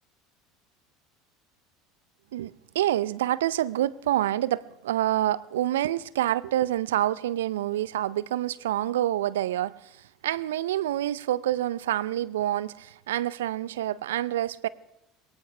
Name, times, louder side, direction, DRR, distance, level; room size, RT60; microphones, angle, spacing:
voice 1, 2.3-9.7 10.2-14.7, right 13 dB, 75° right, 0.5 m, -27 dB
21.0 x 18.5 x 3.3 m
hypercardioid pair, 70°, 0 cm